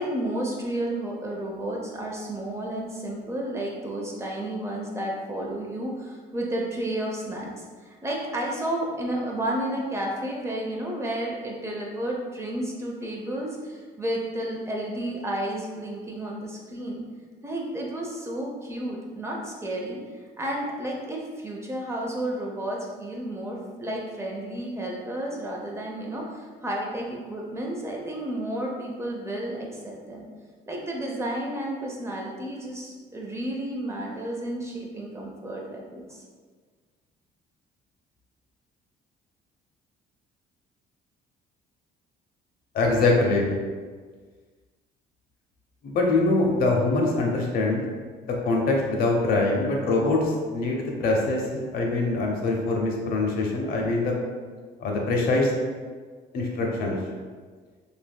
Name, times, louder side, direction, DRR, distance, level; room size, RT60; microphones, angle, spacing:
voice 1, 0.0-7.5 7.8-17.0 17.4-20.0 20.4-30.3 30.7-36.2, right 1 dB, 15° right, -2 dB, 0.5 m, -32 dB
voice 2, 42.7-43.5 45.8-47.8 48.2-54.1 54.8-55.5 56.3-57.0, left 2 dB, 60° left, 0 dB, 0.7 m, -23 dB
3.4 x 2.7 x 2.2 m, 1.5 s
cardioid pair, 110°, 17 cm